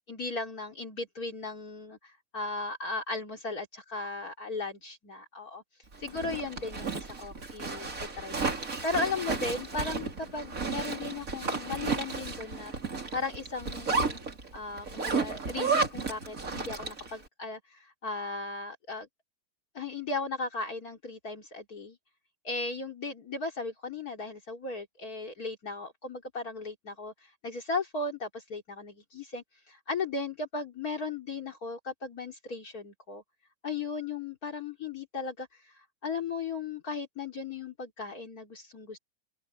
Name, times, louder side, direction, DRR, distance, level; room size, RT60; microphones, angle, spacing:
voice 1, 0.1-5.6 6.0-7.9 8.2-12.8 13.1-14.2 14.5-19.1 19.7-22.0 22.4-33.2 33.6-35.7 36.0-39.0, left 3 dB, 45° left, 3.3 m, -36 dB
Zipper (clothing), 5.9-17.1, right 4 dB, 40° right, 3.5 m, -33 dB
open air
omnidirectional pair, 2.2 m